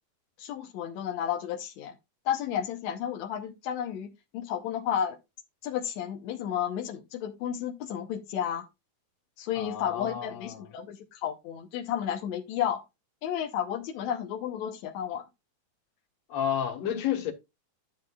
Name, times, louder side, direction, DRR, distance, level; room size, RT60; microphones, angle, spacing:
voice 1, 0.4-1.9 2.2-5.2 5.6-8.7 9.4-12.8 13.2-15.2, left 9 dB, 75° left, 1.6 m, -32 dB
voice 2, 9.5-10.7 16.3-17.3, left 9 dB, 55° left, 2.2 m, -31 dB
11.5 x 7.6 x 2.4 m
omnidirectional pair, 4.4 m